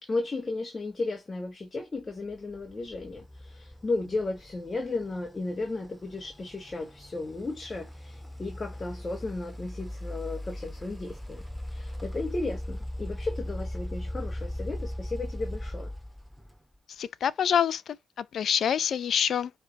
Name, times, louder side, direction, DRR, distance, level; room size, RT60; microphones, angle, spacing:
voice 1, 0.0-11.4 11.7-15.9, left 3 dB, 25° left, 1.5 m, -34 dB
sound 1, 2.3-16.8, left 1 dB, ahead, 1.9 m, -39 dB
voice 2, 17.0-17.8 18.2-19.5, left 8 dB, 60° left, 0.6 m, -26 dB
9.7 x 3.6 x 4.1 m
cardioid pair, 90°, 0 cm